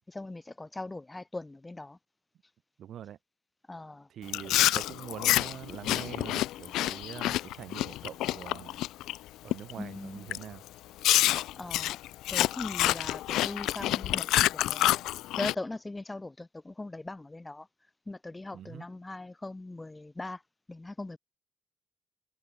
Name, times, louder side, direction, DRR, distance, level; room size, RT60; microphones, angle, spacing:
voice 1, 0.1-2.0 3.7-4.1 9.8-10.3 11.5-12.0 12.3-14.3 14.5-15.0 15.4-17.7 18.1-20.4 20.7-21.2, left 2 dB, 15° left, 1.8 m, -40 dB
voice 2, 2.8-3.2 4.1-8.8 9.4-10.6 18.5-18.9, right 10 dB, 70° right, 4.5 m, -44 dB
Chewing mastication, 4.3-9.2 9.5-9.8 10.3-10.4 11.0-15.5, left 15 dB, 90° left, 0.5 m, -27 dB
cardioid pair, 90°, 0 cm